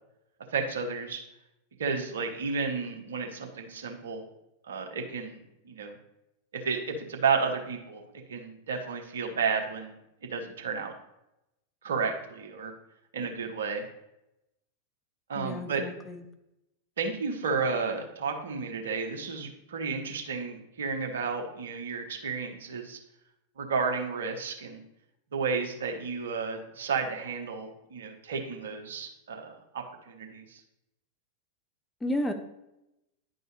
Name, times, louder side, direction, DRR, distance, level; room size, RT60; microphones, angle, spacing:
voice 1, 0.5-1.2 1.8-4.2 4.6-6.0 6.5-8.0 8.3-10.0 10.3-10.9 11.8-12.7 13.1-13.9 15.3-15.8 17.0-23.0 23.6-24.8 25.3-30.6, right 5 dB, 65° right, 4 dB, 0.9 m, -32 dB
voice 2, 15.4-16.2 32.0-32.3, left 1 dB, 10° left, 6 dB, 0.7 m, -32 dB
9.9 x 4.5 x 3.1 m, 0.89 s
figure-of-eight pair, 90°, 0 cm